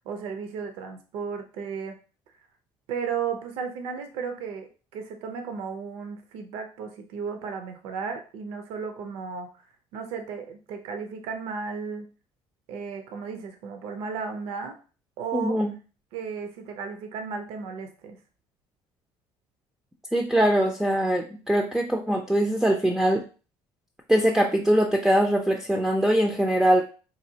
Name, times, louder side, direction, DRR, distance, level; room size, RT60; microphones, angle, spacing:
voice 1, 0.0-2.0 2.9-9.7 9.9-12.0 12.7-14.8 15.2-15.6 16.1-18.2, right 6 dB, 70° right, 6 dB, 0.6 m, -34 dB
voice 2, 15.3-15.7 20.1-23.2 24.1-26.8, right 1 dB, 5° right, 3 dB, 0.3 m, -22 dB
4.0 x 2.6 x 2.7 m, 0.36 s
cardioid pair, 140°, 10 cm